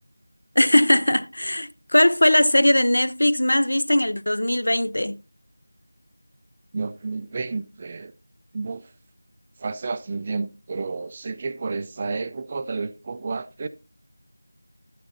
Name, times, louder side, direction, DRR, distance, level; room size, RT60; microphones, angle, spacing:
voice 1, 0.6-5.2, left 1 dB, 80° left, 0.7 m, -19 dB
voice 2, 6.7-8.1 8.5-8.8 9.6-13.7, right 4 dB, 20° right, 0.4 m, -31 dB
10.0 x 9.6 x 2.8 m
figure-of-eight pair, 175°, 0 cm